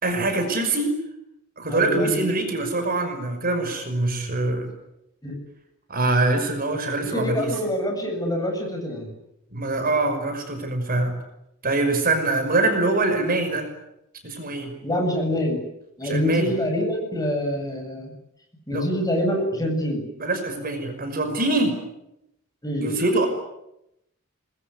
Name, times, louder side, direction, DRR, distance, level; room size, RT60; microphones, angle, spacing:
voice 1, 0.0-0.9 1.6-4.7 5.9-7.5 9.5-11.1 11.6-13.7 14.2-14.7 16.0-16.5 18.7-18.9 19.6-19.7 20.2-21.8 22.8-23.3, right 2 dB, 40° right, 6 dB, 5.8 m, -24 dB
voice 2, 1.7-2.2 5.2-5.4 7.0-9.1 14.8-15.6 16.0-18.1 18.7-20.1 22.6-22.9, equal, 15° left, 3 dB, 7.9 m, -25 dB
26.0 x 21.5 x 9.7 m, 0.83 s
head